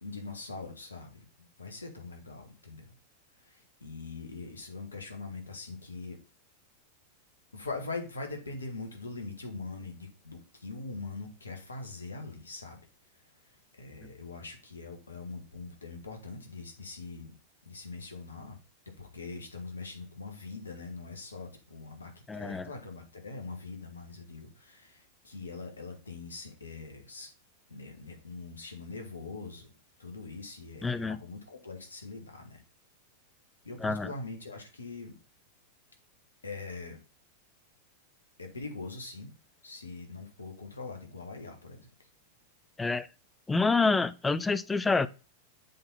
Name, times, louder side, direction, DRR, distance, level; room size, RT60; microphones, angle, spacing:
voice 1, 0.0-1.2 1.6-2.9 3.4-6.2 7.5-12.8 13.4-17.3 17.6-18.6 19.0-27.3 27.7-29.7 30.0-32.6 33.6-35.2 36.4-37.0 38.4-39.3 39.6-42.1, left 3 dB, 75° left, 1.7 m, -42 dB
voice 2, 22.3-22.7 30.8-31.2 33.8-34.1 42.8-43.1 43.5-45.1, left 4 dB, 10° left, 0.4 m, -27 dB
7.5 x 4.0 x 4.2 m
figure-of-eight pair, 90°, 0 cm